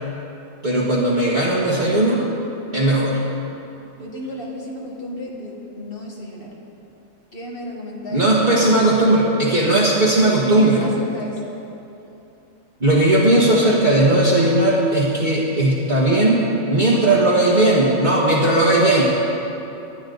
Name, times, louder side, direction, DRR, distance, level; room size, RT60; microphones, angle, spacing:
voice 1, 0.6-2.2 2.7-3.2 8.1-10.8 12.8-19.0, right 1 dB, 35° right, -7 dB, 1.7 m, -17 dB
voice 2, 4.0-6.5 7.3-8.9 9.9-11.5 16.9-17.5, left 1 dB, 40° left, -2 dB, 2.0 m, -33 dB
19.5 x 11.0 x 4.0 m, 2.9 s
omnidirectional pair, 1.4 m